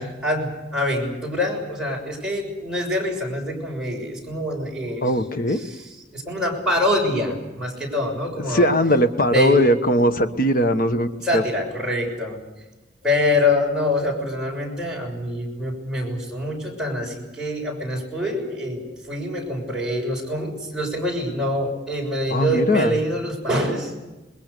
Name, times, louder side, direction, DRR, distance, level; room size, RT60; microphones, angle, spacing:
voice 1, 0.0-5.0 5.5-8.7 9.3-9.7 11.2-12.4 13.0-23.9, left 1 dB, 5° right, -3 dB, 6.5 m, -25 dB
voice 2, 5.0-5.6 8.5-11.4 22.3-22.9, equal, 55° left, 8 dB, 1.3 m, -19 dB
27.5 x 21.0 x 6.8 m, 1.1 s
head